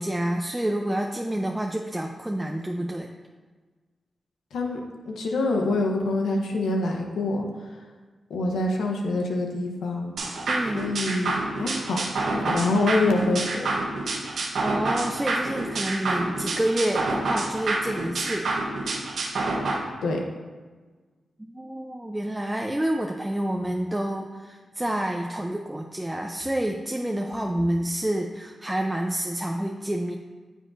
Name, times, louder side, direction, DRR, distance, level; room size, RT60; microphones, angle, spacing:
voice 1, 0.0-3.1 10.5-10.9 14.6-18.5 21.4-30.2, right 1 dB, 15° right, 2 dB, 0.6 m, -28 dB
voice 2, 4.5-4.8 5.1-7.7 8.3-10.1 10.7-12.0 12.3-13.7 20.0-20.3, left 2 dB, 85° left, 2 dB, 0.9 m, -26 dB
sound 1, 10.2-19.8, right 2 dB, 75° right, 0.9 m, -28 dB
9.1 x 6.4 x 2.6 m, 1.4 s
supercardioid pair, 40°, 0 cm